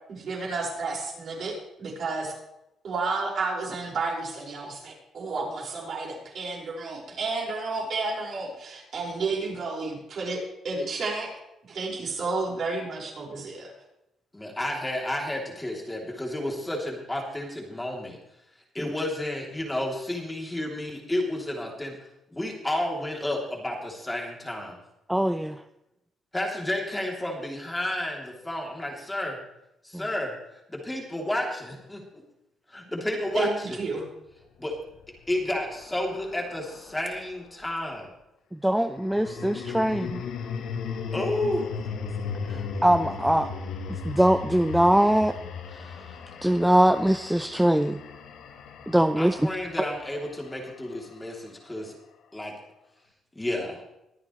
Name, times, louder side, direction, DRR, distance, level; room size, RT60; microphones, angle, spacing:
voice 1, 0.1-2.3 2.8-11.3 11.7-13.7 33.3-34.0, right 3 dB, 55° right, -3 dB, 5.4 m, -31 dB
voice 2, 14.3-18.2 18.7-21.9 22.3-24.8 26.3-29.4 29.8-32.2 32.7-33.8 34.6-34.7 35.3-38.1 41.1-41.7 49.2-51.9 52.3-52.5 53.3-53.8, left 1 dB, 10° left, -1 dB, 3.1 m, -31 dB
voice 3, 25.1-25.6 38.5-40.2 42.5-43.5 44.0-45.3 45.8-45.9 46.4-48.0 48.9-49.4, right 1 dB, 5° right, 9 dB, 0.5 m, -22 dB
sound 1, 34.7-37.2 38.8-51.1, left 5 dB, 80° left, 1.4 m, -37 dB
23.0 x 8.9 x 3.2 m, 0.88 s
cardioid pair, 90°, 0 cm